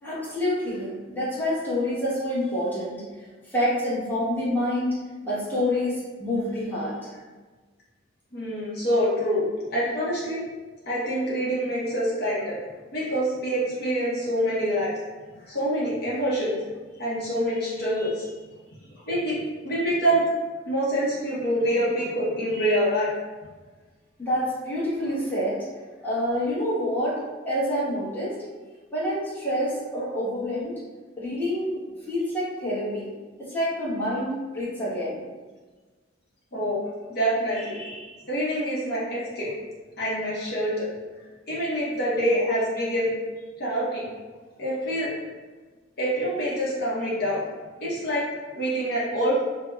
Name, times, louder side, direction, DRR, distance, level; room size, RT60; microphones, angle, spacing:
voice 1, 0.0-5.0 5.2-7.2 15.4-15.5 24.2-25.6 26.0-28.4 28.9-30.8 31.2-33.1 33.4-35.2, left 1 dB, 10° left, -10 dB, 0.9 m, -27 dB
voice 2, 8.3-10.4 10.9-12.6 12.9-14.9 15.5-16.6 17.0-18.3 19.1-19.4 19.6-20.2 20.7-23.1 36.5-36.8 37.1-39.5 40.0-40.9 41.5-43.1 43.6-44.1 44.6-45.1 46.0-47.4 47.8-48.2 48.5-49.4, equal, 50° left, -7 dB, 0.7 m, -26 dB
5.0 x 2.0 x 2.2 m, 1.3 s
head